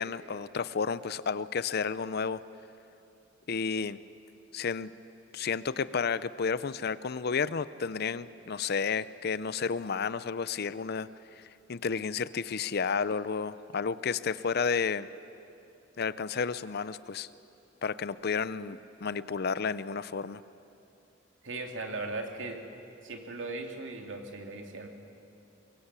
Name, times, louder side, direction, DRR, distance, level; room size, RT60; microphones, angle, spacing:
voice 1, 0.0-2.4 3.5-4.0 4.5-4.9 5.3-11.1 11.4-11.5 11.7-15.1 16.0-17.3 17.8-20.4, left 5 dB, 55° left, 16 dB, 0.6 m, -31 dB
voice 2, 21.4-22.6 23.0-24.9, right 2 dB, 70° right, 3 dB, 2.6 m, -38 dB
23.0 x 23.0 x 8.2 m, 2.7 s
head